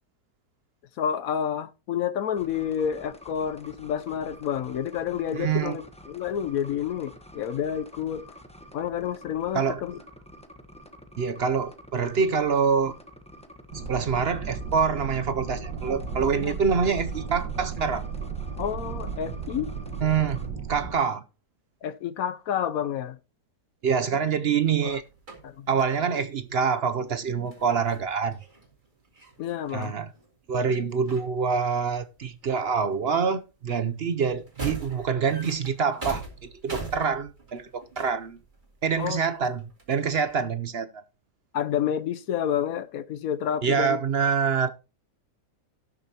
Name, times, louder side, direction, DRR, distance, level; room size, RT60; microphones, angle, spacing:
voice 1, 1.0-8.4 8.7-10.0 16.3-16.6 18.6-19.7 21.8-23.2 24.8-25.0 25.4-25.7 29.4-30.0 39.0-39.2 41.5-44.0, left 9 dB, 65° left, 1.0 m, -29 dB
sound 1, 2.4-20.5, equal, 5° left, 0.9 m, -48 dB
voice 2, 5.3-5.8 9.5-9.8 11.2-12.9 13.9-18.1 20.0-20.4 20.7-21.2 23.8-25.0 25.7-28.4 29.7-30.1 30.5-38.4 38.8-41.0 43.6-44.7, right 6 dB, 60° right, 0.7 m, -26 dB
sound 2, 13.7-20.9, right 5 dB, 90° right, 2.1 m, -35 dB
sound 3, 24.9-26.0 27.5-30.6 30.9-31.9 32.2-33.1 33.3-40.3, right 2 dB, 30° right, 3.0 m, -42 dB
18.0 x 6.7 x 2.9 m
omnidirectional pair, 1.8 m